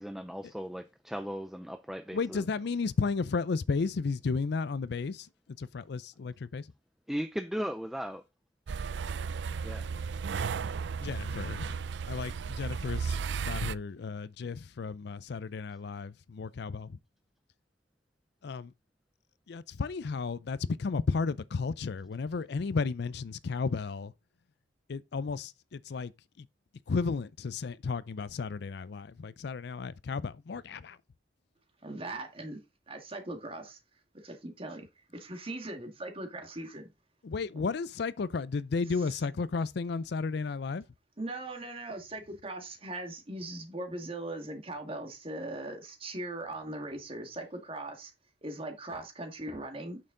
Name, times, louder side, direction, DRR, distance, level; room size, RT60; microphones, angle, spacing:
voice 1, 0.0-2.5 7.1-8.2 9.6-9.9, equal, ahead, 0.4 m, -37 dB
voice 2, 2.1-5.3 5.6-6.6 11.0-11.8 12.1-13.2 13.4-17.0 18.4-18.7 19.5-24.1 24.9-26.1 26.4-26.5 26.9-31.0 37.2-40.8, left 4 dB, 60° left, 0.4 m, -33 dB
sound 1, 8.7-13.8, right 5 dB, 70° right, 0.4 m, -34 dB
voice 3, 31.8-32.6 32.9-33.8 34.2-34.9 35.1-36.9 41.2-48.1 48.4-50.0, right 2 dB, 30° right, 1.9 m, -39 dB
8.9 x 6.6 x 3.8 m
head